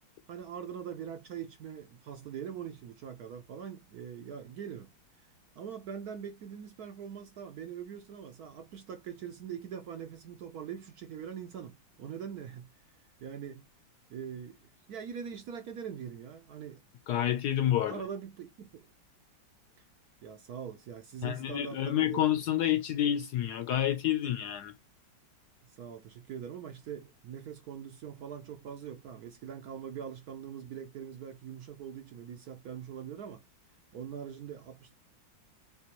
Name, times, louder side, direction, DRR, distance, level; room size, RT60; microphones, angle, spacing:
voice 1, 0.3-4.9 5.6-12.7 13.2-13.6 14.1-14.6 14.9-16.8 17.9-18.9 20.2-22.2 25.8-33.4 33.9-35.0, right 8 dB, 65° right, 1.0 m, -42 dB
voice 2, 17.1-18.0 21.2-24.7, left 11 dB, 75° left, 1.0 m, -29 dB
4.2 x 3.5 x 2.9 m
omnidirectional pair, 2.1 m